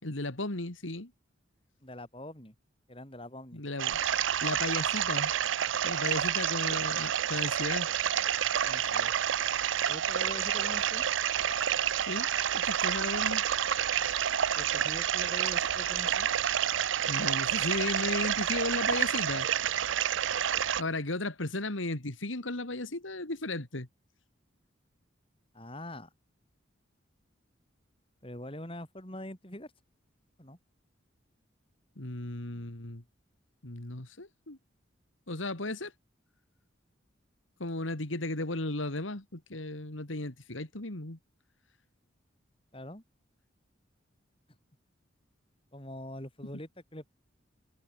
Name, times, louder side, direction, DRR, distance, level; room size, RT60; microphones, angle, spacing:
voice 1, 0.0-1.1 3.5-4.0 4.4-5.3 5.8-7.9 12.1-12.3 12.5-13.4 17.1-19.5 20.8-23.9 32.0-33.0 33.6-34.6 35.3-35.9 37.6-41.2, left 2 dB, 80° left, 2.8 m, -35 dB
voice 2, 1.8-2.5 2.9-3.6 8.6-9.1 9.9-11.0 14.6-16.3 25.5-26.1 28.2-29.7 30.4-30.6 42.7-43.0 45.7-47.1, left 1 dB, 25° left, 4.8 m, -43 dB
sound 1, 3.8-20.8, right 9 dB, 75° right, 0.6 m, -29 dB
head